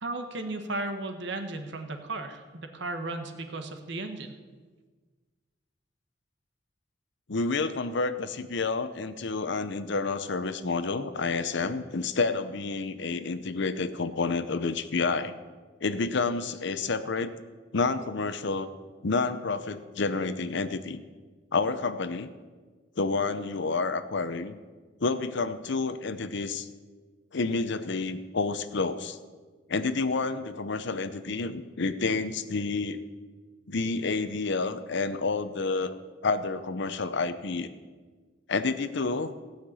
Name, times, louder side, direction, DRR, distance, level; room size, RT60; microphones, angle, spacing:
voice 1, 0.0-4.3, right 2 dB, 65° right, 6 dB, 1.4 m, -35 dB
voice 2, 7.3-15.3 15.8-17.3 17.7-18.7 19.0-21.0 21.5-22.3 23.0-24.6 25.0-26.7 27.3-29.2 29.7-33.0 33.7-35.9 36.2-37.7 38.5-39.3, left 4 dB, 65° left, 12 dB, 0.7 m, -29 dB
17.0 x 5.9 x 8.5 m, 1.4 s
head